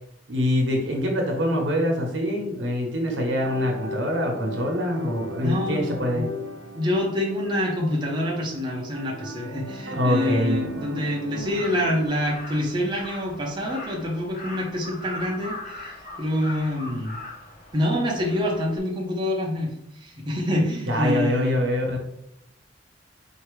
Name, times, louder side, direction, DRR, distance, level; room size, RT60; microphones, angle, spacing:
voice 1, 0.3-6.3 9.9-10.7 20.9-22.0, equal, 70° right, 0 dB, 1.1 m, -24 dB
sound 1, 3.4-12.1, equal, 90° right, 0.8 m, -37 dB
voice 2, 5.4-6.3 6.8-17.1 17.7-21.6, left 1 dB, 25° right, -3 dB, 0.8 m, -26 dB
Crow, 11.4-18.8, left 2 dB, 45° left, 0.8 m, -40 dB
4.6 x 2.8 x 3.1 m, 0.77 s
head